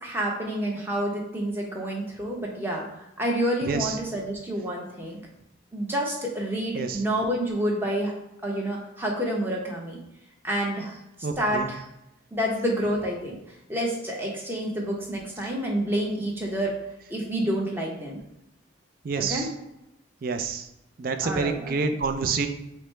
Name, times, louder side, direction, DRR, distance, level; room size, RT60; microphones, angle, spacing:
voice 1, 0.0-5.2 5.7-8.1 8.4-10.0 10.4-11.0 11.4-11.8 12.3-13.3 13.7-16.7 17.1-18.2 19.2-19.5 21.2-21.9, right 1 dB, 10° right, -2 dB, 0.8 m, -28 dB
voice 2, 3.6-4.0 6.7-7.0 11.2-11.7 19.0-19.5 20.2-20.7 21.0-22.5, right 4 dB, 50° right, 7 dB, 0.4 m, -28 dB
4.9 x 2.1 x 4.4 m, 0.86 s
head